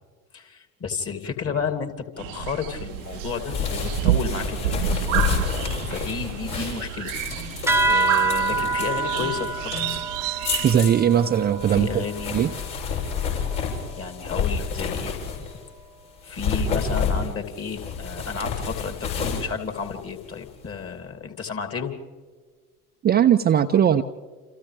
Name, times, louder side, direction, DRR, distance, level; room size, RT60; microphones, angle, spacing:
voice 1, 0.3-4.8 5.8-7.1 7.5-9.8 11.7-12.4 13.6-13.7 14.0-15.5 16.2-21.9, left 6 dB, 30° left, 6 dB, 2.8 m, -32 dB
sound 1, 2.2-10.8, right 16 dB, 55° right, 0.8 m, -29 dB
sound 2, 3.0-15.7 16.2-20.5, left 6 dB, 60° left, 7.3 m, -30 dB
sound 3, 7.7-12.6, right 3 dB, 5° right, 1.0 m, -26 dB
voice 2, 10.6-12.0 12.3-12.5 23.0-24.0, right 9 dB, 20° right, 6 dB, 0.6 m, -19 dB
29.0 x 28.0 x 3.5 m, 1.5 s
figure-of-eight pair, 70°, 46 cm